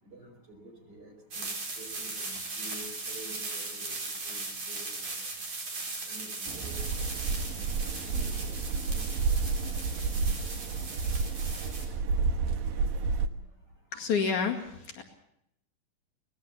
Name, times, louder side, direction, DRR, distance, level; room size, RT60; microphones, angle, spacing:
voice 1, 0.0-4.0 4.2-4.4 4.7-5.1 6.1-7.7 8.0-9.1 9.9-10.3, right 1 dB, 25° right, 3 dB, 5.4 m, -50 dB
sound 1, 1.3-11.9, right 3 dB, 45° right, 5.5 m, -38 dB
sound 2, 6.5-13.3, right 4 dB, 85° right, 3.0 m, -30 dB
voice 2, 13.9-15.0, left 5 dB, 60° left, 3 dB, 3.4 m, -29 dB
24.0 x 19.0 x 7.0 m, 0.76 s
omnidirectional pair, 4.0 m